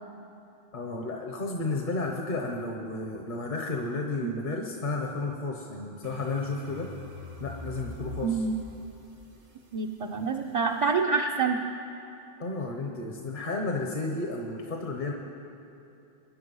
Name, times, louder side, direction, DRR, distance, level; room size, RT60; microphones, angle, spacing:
voice 1, 0.7-6.9 7.4-8.4 12.4-15.1, left 3 dB, 55° left, 1 dB, 1.3 m, -32 dB
sound 1, 6.0-10.9, equal, 80° right, 1.8 m, -44 dB
voice 2, 8.2-8.5 9.7-11.6, right 5 dB, 35° right, 0 dB, 0.7 m, -27 dB
23.5 x 10.5 x 5.5 m, 2.8 s
omnidirectional pair, 1.0 m